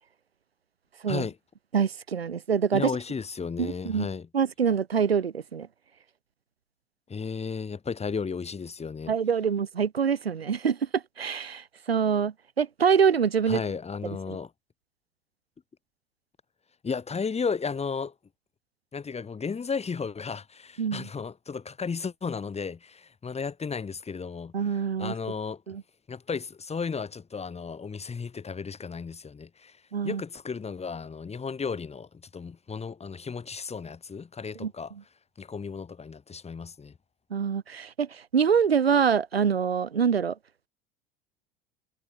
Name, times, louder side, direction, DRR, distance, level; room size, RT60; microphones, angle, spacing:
voice 1, 1.7-2.9 3.6-4.1 4.3-5.7 9.1-13.6 14.3-14.4 20.8-21.1 24.5-25.1 25.7-25.8 29.9-30.2 34.6-34.7 37.3-40.4, right 7 dB, 85° right, 2.1 m, -25 dB
voice 2, 2.7-4.3 7.1-9.1 13.5-14.5 16.8-18.1 18.9-25.6 26.1-29.8 30.0-34.9 35.4-36.9, left 5 dB, 20° left, 1.8 m, -34 dB
figure-of-eight pair, 70°, 30 cm